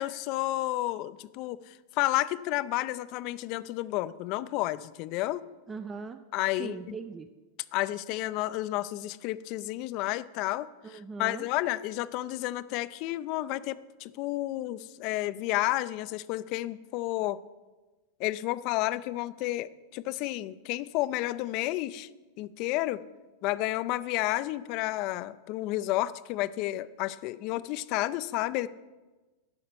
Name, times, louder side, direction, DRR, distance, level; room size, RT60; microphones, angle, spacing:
voice 1, 0.0-5.4 6.3-7.0 7.7-17.4 18.2-22.1 22.4-23.0 23.4-28.7, left 16 dB, 40° left, 16 dB, 0.4 m, -31 dB
voice 2, 5.7-6.2 6.6-7.3 10.8-11.5, right 5 dB, 20° right, 9 dB, 0.4 m, -39 dB
11.5 x 5.7 x 6.9 m, 1.2 s
figure-of-eight pair, 90°, 0 cm